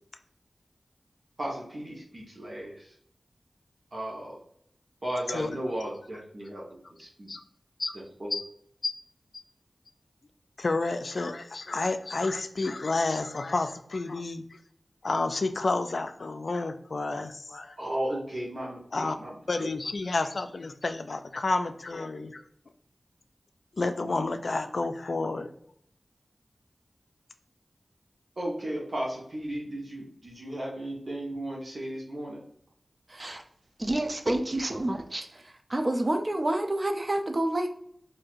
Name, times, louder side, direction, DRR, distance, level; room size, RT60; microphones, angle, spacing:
voice 1, 1.4-2.9 3.9-4.4 5.0-7.3 7.9-8.3 17.8-19.7 28.4-32.4, right 1 dB, 60° right, -4 dB, 1.0 m, -35 dB
voice 2, 10.6-14.6 15.0-17.8 18.9-19.2 19.5-22.4 23.8-25.5, left 3 dB, 70° left, 8 dB, 0.3 m, -30 dB
voice 3, 33.1-33.4 33.8-35.4 35.7-37.7, right 1 dB, 45° right, 5 dB, 0.5 m, -28 dB
4.4 x 2.7 x 2.4 m, 0.69 s
wide cardioid pair, 55°, 0 cm